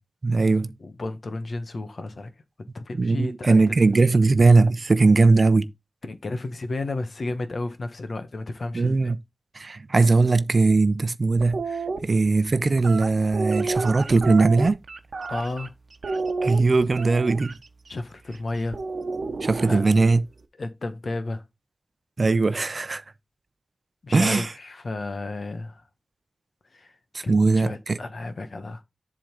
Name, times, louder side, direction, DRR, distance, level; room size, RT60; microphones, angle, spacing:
voice 1, 0.2-0.7 3.0-5.7 8.7-9.2 9.5-14.8 16.4-17.5 19.4-20.2 22.2-23.0 24.1-24.5 27.1-28.0, right 3 dB, 45° right, 0.7 m, -20 dB
voice 2, 0.8-2.3 2.7-3.6 6.1-9.1 15.3-15.7 17.9-18.8 19.7-19.9 20.6-21.4 24.0-25.8 26.7-26.9 27.2-28.8, left 2 dB, 55° left, 1.3 m, -32 dB
sound 1, 11.4-12.0 12.8-15.7 16.0-17.5 18.7-20.1, right 4 dB, 60° right, 1.0 m, -30 dB
7.6 x 3.9 x 5.2 m
wide cardioid pair, 85°, 0 cm